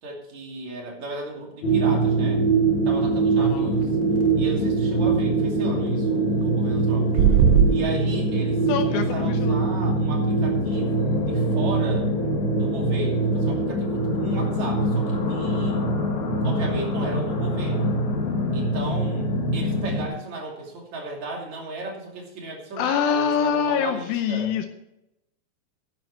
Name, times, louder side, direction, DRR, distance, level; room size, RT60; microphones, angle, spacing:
voice 1, 0.0-2.4 2.9-4.0 4.4-7.2 7.7-12.1 12.6-15.8 16.4-17.9 18.5-19.3 19.5-24.5, right 2 dB, 45° right, 0 dB, 3.7 m, -35 dB
sound 1, 1.6-20.1, right 2 dB, 55° left, 2.7 m, -23 dB
voice 2, 3.4-3.7 8.7-9.6 22.8-24.7, left 7 dB, 75° left, 6 dB, 2.4 m, -25 dB
sound 2, 7.1-7.7, right 9 dB, 75° right, 2.4 m, -16 dB
12.0 x 10.0 x 4.5 m, 0.85 s
omnidirectional pair, 4.6 m